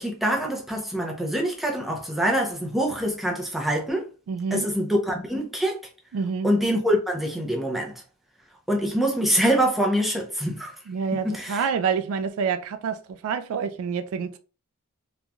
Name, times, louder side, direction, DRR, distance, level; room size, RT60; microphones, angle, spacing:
voice 1, 0.0-4.0 4.5-5.8 6.4-7.9 8.7-10.8 11.1-11.7, equal, ahead, 0.5 m, -25 dB
voice 2, 4.3-4.7 6.1-6.5 10.9-13.0 13.2-14.4, right 6 dB, 70° right, 0.3 m, -27 dB
3.0 x 2.4 x 2.2 m
head